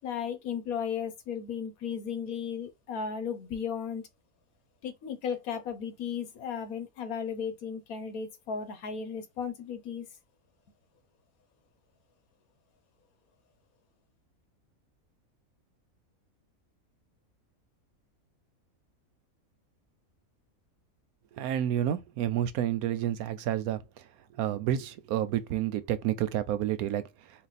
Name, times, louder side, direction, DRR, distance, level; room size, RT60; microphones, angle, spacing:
voice 1, 0.0-4.0 4.8-10.0, left 7 dB, 85° left, 1.4 m, -35 dB
voice 2, 21.4-23.8 24.3-27.1, right 11 dB, 90° right, 1.1 m, -29 dB
4.1 x 2.3 x 4.0 m
omnidirectional pair, 1.5 m